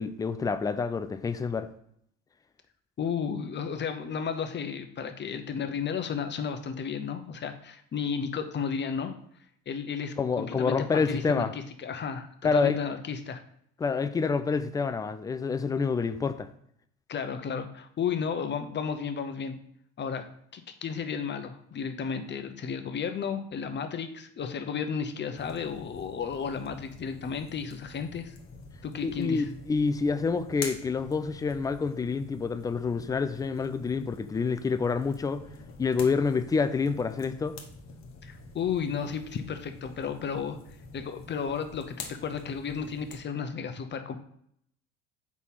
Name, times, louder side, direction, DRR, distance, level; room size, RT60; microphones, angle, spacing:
voice 1, 0.0-1.7 10.2-11.5 12.4-12.8 13.8-16.5 29.0-35.4 35.8-37.5, left 5 dB, 10° left, 11 dB, 0.3 m, -28 dB
voice 2, 3.0-9.1 9.7-13.4 17.1-19.6 20.0-20.2 20.5-28.4 28.8-29.4 38.2-40.6 40.9-44.2, left 6 dB, 30° left, 8 dB, 0.8 m, -33 dB
sound 1, 25.4-43.2, left 4 dB, 45° left, 1.2 m, -46 dB
4.8 x 4.1 x 5.6 m, 0.68 s
hypercardioid pair, 65°, 37 cm